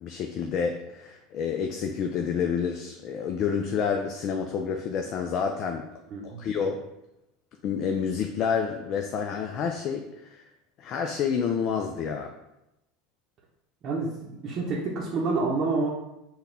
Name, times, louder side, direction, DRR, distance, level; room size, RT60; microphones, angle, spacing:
voice 1, 0.0-5.9 6.2-6.8 7.6-10.4 10.8-12.3, left 6 dB, 50° left, 4 dB, 0.3 m, -29 dB
voice 2, 6.1-6.4 13.8-15.9, right 3 dB, 45° right, -4 dB, 0.7 m, -28 dB
3.9 x 2.2 x 3.9 m, 0.89 s
hypercardioid pair, 80°, 0 cm